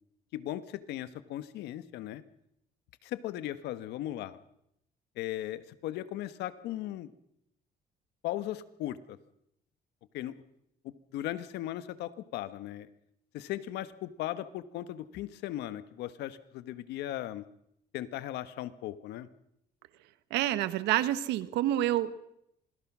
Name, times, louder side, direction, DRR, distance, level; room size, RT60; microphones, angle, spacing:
voice 1, 0.3-2.2 3.0-4.4 5.2-7.1 8.2-9.2 10.1-10.3 10.8-12.9 13.3-17.4 17.9-19.3, left 13 dB, 80° left, 13 dB, 1.4 m, -37 dB
voice 2, 20.3-22.2, right 13 dB, 90° right, 14 dB, 1.4 m, -28 dB
26.5 x 21.0 x 6.2 m, 0.78 s
cardioid pair, 110°, 17 cm